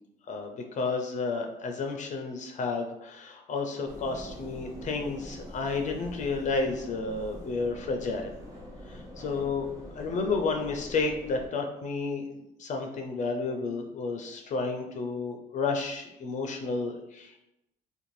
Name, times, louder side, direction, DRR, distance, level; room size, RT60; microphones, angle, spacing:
voice 1, 0.3-8.3 8.9-12.3 12.6-17.4, left 4 dB, 45° left, 3 dB, 0.4 m, -31 dB
sound 1, 3.9-11.5, equal, 20° right, 0.8 m, -44 dB
2.6 x 2.1 x 3.0 m, 0.86 s
cardioid pair, 110°, 17 cm